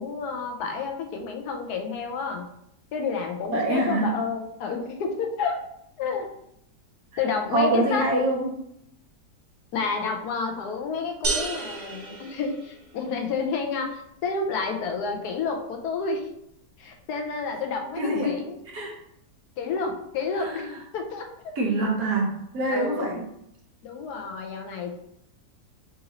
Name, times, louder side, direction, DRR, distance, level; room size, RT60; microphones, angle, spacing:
voice 1, 0.0-2.4 2.9-5.6 6.0-6.3 7.2-8.1 9.7-16.3 16.8-18.6 19.6-21.5 22.7-23.2 23.8-25.0, left 4 dB, 70° left, 4 dB, 1.2 m, -30 dB
voice 2, 3.5-4.1 7.5-8.5 18.0-18.3 18.7-18.9 20.3-20.7 21.6-23.2, right 1 dB, 65° right, -1 dB, 1.2 m, -25 dB
sound 1, 11.2-13.1, right 3 dB, 90° right, 0.5 m, -31 dB
3.8 x 2.7 x 4.1 m, 0.75 s
omnidirectional pair, 1.8 m